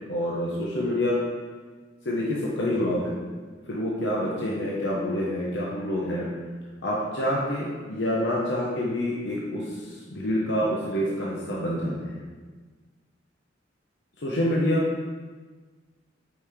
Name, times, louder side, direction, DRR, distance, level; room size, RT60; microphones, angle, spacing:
voice 1, 0.1-1.2 2.0-3.1 3.7-6.3 6.8-12.1 14.2-14.9, left 1 dB, 65° left, -5 dB, 1.1 m, -27 dB
8.2 x 5.1 x 3.7 m, 1.4 s
head